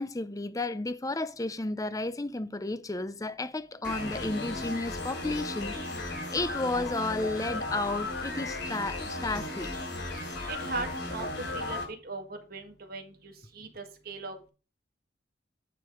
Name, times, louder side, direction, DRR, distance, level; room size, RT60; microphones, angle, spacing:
voice 1, 0.0-9.7, left 2 dB, 20° left, 0.6 m, -33 dB
sound 1, 3.8-11.8, left 2 dB, 70° left, 4.1 m, -35 dB
voice 2, 10.5-11.3 11.5-14.5, right 3 dB, 55° right, 1.7 m, -39 dB
9.3 x 5.1 x 4.9 m
head